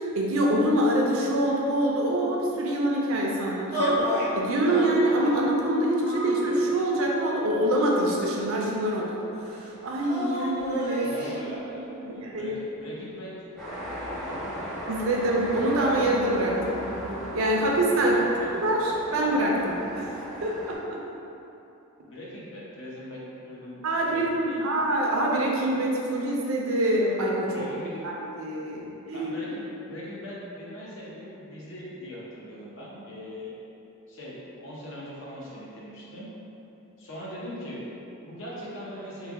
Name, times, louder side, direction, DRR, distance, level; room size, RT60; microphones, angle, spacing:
voice 1, 0.1-11.1 11.7-12.6 14.9-16.8 17.3-18.3 18.6-20.8 23.8-27.6 28.0-29.3, right 1 dB, 70° right, -2 dB, 0.5 m, -25 dB
sound 1, 3.7-4.3 4.7-5.3 6.0-6.9 7.6-8.6 10.0-11.4, equal, 40° left, 1.2 m, -31 dB
voice 2, 11.0-13.5 14.1-14.7 18.1-18.5 22.0-24.7 27.4-28.1 28.7-28.8 29.1-33.5 34.1-36.3 37.0-39.3, equal, 55° left, -6 dB, 0.7 m, -41 dB
sound 2, 13.6-20.8, equal, ahead, 0.5 m, -36 dB
3.2 x 2.2 x 3.5 m, 2.9 s
head